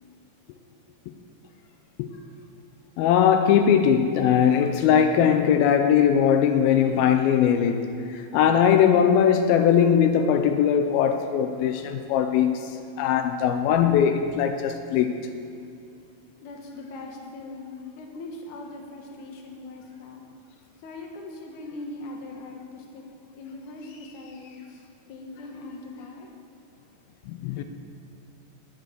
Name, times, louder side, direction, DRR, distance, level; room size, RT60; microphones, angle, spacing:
voice 1, 3.0-15.1 27.3-27.6, left 8 dB, 90° left, 2.1 m, -20 dB
voice 2, 16.4-20.2 20.8-23.0 23.3-26.3 27.6-27.7, left 2 dB, 60° left, 2.3 m, -41 dB
10.5 x 9.4 x 6.7 m
omnidirectional pair, 4.9 m